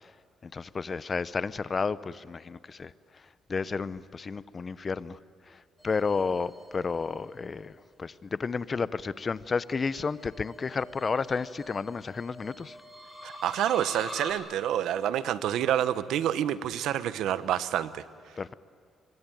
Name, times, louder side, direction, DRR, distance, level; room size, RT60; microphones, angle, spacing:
voice 1, 0.4-2.9 3.5-5.2 5.8-7.7 8.0-8.1 8.4-12.7 18.4-18.5, left 4 dB, 35° left, 17 dB, 0.8 m, -31 dB
sound 1, 5.8-7.4 9.8-14.3, left 1 dB, 5° left, 6.4 m, -45 dB
voice 2, 13.2-18.0, right 11 dB, 85° right, 14 dB, 1.0 m, -28 dB
25.5 x 22.5 x 9.2 m, 2.4 s
cardioid pair, 90°, 0 cm